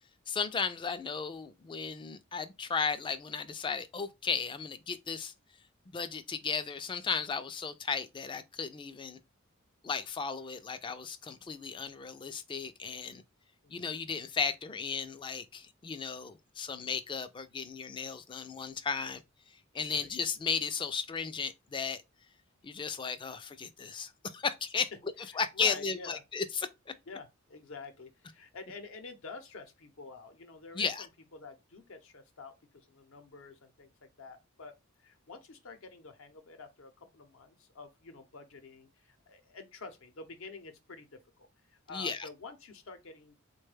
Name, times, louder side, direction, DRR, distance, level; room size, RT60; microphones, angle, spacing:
voice 1, 0.3-5.3 5.9-9.2 9.8-13.2 13.7-19.2 19.7-22.0 22.6-24.9 25.3-26.7 30.7-31.1 41.9-42.3, left 5 dB, 25° left, 0.3 m, -35 dB
voice 2, 25.3-26.2 27.1-32.5 32.9-34.7 35.0-43.4, left 4 dB, 65° left, 0.7 m, -48 dB
3.6 x 2.2 x 3.2 m
head